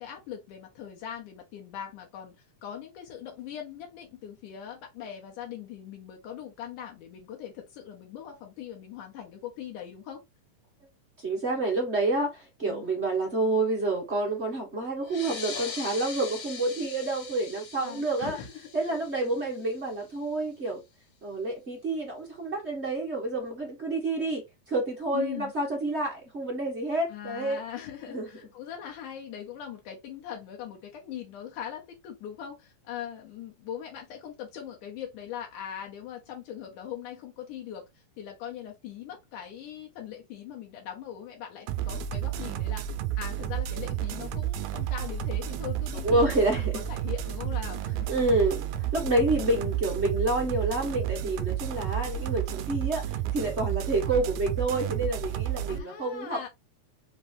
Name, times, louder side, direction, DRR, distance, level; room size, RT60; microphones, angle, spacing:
voice 1, 0.0-10.2 12.6-12.8 17.8-19.0 25.1-25.5 27.1-42.9 43.2-46.4 46.7-48.1 55.7-56.5, left 9 dB, 80° left, 2.4 m, -41 dB
voice 2, 11.2-18.4 18.7-20.8 21.2-27.6 28.1-28.3 46.0-46.9 48.1-48.6 48.9-56.5, right 2 dB, 35° right, 1.0 m, -28 dB
sound 1, 15.0-20.1, left 5 dB, 60° left, 2.1 m, -41 dB
sound 2, 41.7-55.8, right 11 dB, 75° right, 1.8 m, -31 dB
5.3 x 2.9 x 3.2 m
omnidirectional pair, 3.6 m